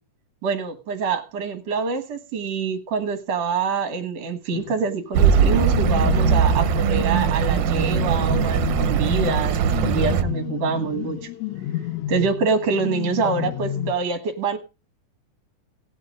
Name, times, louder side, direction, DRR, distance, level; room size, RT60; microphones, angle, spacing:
voice 1, 0.4-11.3 12.1-14.6, right 5 dB, 60° right, 6 dB, 2.5 m, -26 dB
sound 1, 4.5-13.9, left 13 dB, 75° left, 2.1 m, -31 dB
Accelerating revving vroom, 5.1-10.2, right 7 dB, 80° right, 2.3 m, -20 dB
18.0 x 12.0 x 2.5 m, 0.31 s
omnidirectional pair, 3.6 m